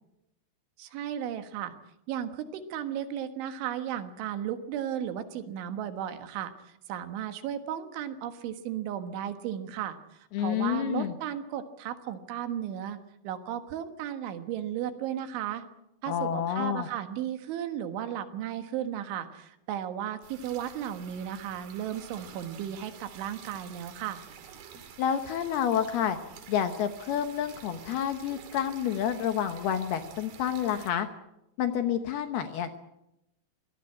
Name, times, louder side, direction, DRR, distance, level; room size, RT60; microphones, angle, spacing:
voice 1, 0.8-1.7 2.1-6.5 6.9-13.0 13.2-15.6 16.0-24.2, right 10 dB, 75° right, 9 dB, 3.8 m, -35 dB
voice 2, 10.3-11.1 16.1-16.9 25.0-26.2 26.5-31.1 31.6-32.8, left 9 dB, 70° left, 8 dB, 2.6 m, -29 dB
sound 1, 20.2-30.9, right 8 dB, 60° right, 3.4 m, -49 dB
24.0 x 17.5 x 8.6 m, 0.87 s
omnidirectional pair, 5.6 m